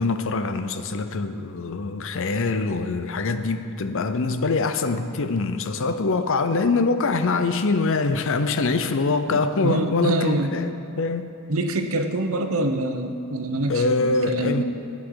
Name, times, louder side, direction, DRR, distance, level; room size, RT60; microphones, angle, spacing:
voice 1, 0.0-11.4 13.7-14.6, left 3 dB, 65° left, 0.6 m, -24 dB
voice 2, 9.3-10.5 11.5-14.6, right 1 dB, 70° right, 1.0 m, -25 dB
15.0 x 8.5 x 4.8 m
head